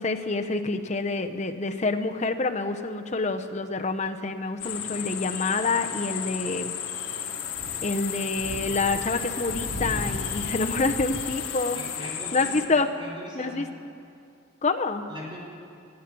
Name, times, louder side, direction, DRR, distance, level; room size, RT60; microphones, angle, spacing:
voice 1, 0.0-6.7 7.8-11.8 12.3-12.9 13.3-13.7 14.6-15.0, left 3 dB, 35° left, 6 dB, 0.7 m, -27 dB
sound 1, 4.6-12.7, left 7 dB, 80° left, 1.4 m, -32 dB
voice 2, 11.7-13.7 15.1-15.4, equal, 25° right, -4 dB, 4.2 m, -41 dB
19.0 x 11.5 x 6.1 m, 2.4 s
head